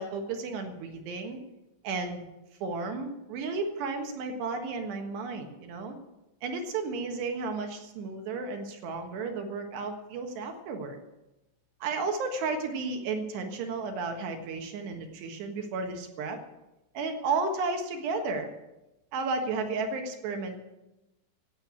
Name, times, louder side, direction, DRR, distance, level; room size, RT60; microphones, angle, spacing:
voice 1, 0.0-1.4 1.8-2.2 2.6-5.9 6.4-11.0 11.8-16.4 16.9-18.5 19.1-20.6, right 4 dB, 65° right, 4 dB, 3.3 m, -33 dB
14.5 x 9.0 x 8.6 m, 0.94 s
omnidirectional pair, 6.0 m